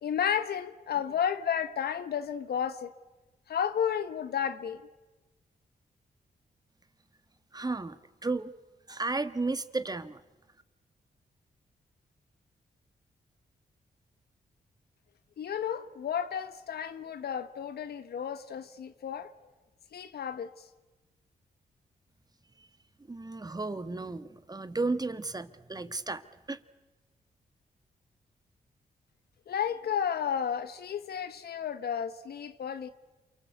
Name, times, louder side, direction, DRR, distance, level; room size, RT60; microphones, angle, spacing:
voice 1, 0.0-2.9 3.5-4.8 15.4-19.3 19.9-20.6 29.5-32.9, left 8 dB, 75° left, 1.3 m, -32 dB
voice 2, 7.5-7.9 8.2-8.5 8.9-10.2 23.1-26.2 26.5-26.6, right 3 dB, 25° right, 1.6 m, -33 dB
28.5 x 24.0 x 8.2 m
cardioid pair, 60°, 17 cm